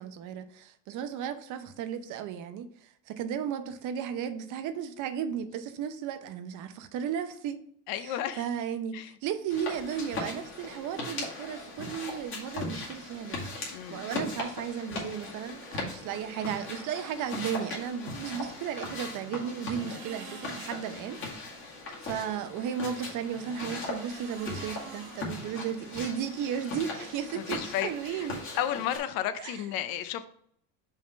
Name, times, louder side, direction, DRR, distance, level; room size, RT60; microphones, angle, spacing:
voice 1, 0.0-7.7 8.0-13.4 13.7-21.2 22.0-28.5 29.4-29.6, right 8 dB, 50° right, 0.7 m, -35 dB
voice 2, 7.9-8.5 8.9-9.1 13.7-14.0 19.7-20.0 27.3-28.3 28.6-30.3, left 11 dB, 60° left, 0.7 m, -33 dB
sound 1, 9.5-29.0, left 3 dB, 30° left, 2.1 m, -39 dB
sound 2, 18.3-21.4 22.9-26.2, right 4 dB, 80° right, 1.6 m, -50 dB
5.4 x 3.6 x 5.5 m
cardioid pair, 130°, 41 cm